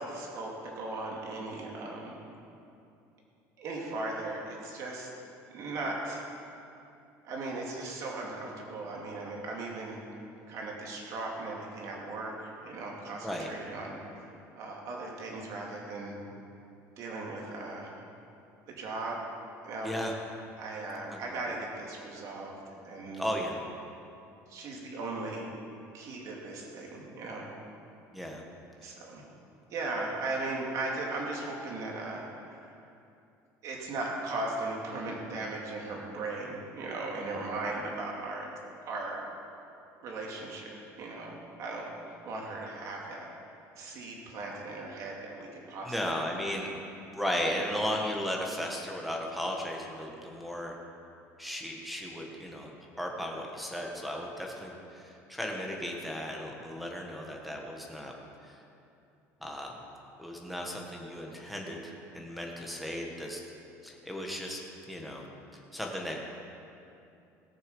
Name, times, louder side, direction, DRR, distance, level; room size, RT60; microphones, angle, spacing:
voice 1, 0.0-2.2 3.6-5.1 5.5-6.3 7.2-10.0 10.5-16.2 17.0-18.0 18.7-19.3 19.6-19.9 20.6-23.3 24.5-25.6 25.9-27.5 28.8-29.2 29.7-32.7 33.6-38.5 38.8-39.2 40.0-43.3 43.8-46.2 47.8-48.0, right 2 dB, 55° right, -1 dB, 2.5 m, -38 dB
voice 2, 23.1-23.6 28.1-28.4 45.8-46.7 47.1-50.7 51.4-52.7 53.0-58.1 58.4-58.6 59.4-59.7 60.2-63.4 63.8-64.6 64.9-65.2 65.5-66.2, equal, ahead, 0 dB, 1.6 m, -35 dB
18.0 x 6.9 x 5.5 m, 2.7 s
cardioid pair, 145°, 7 cm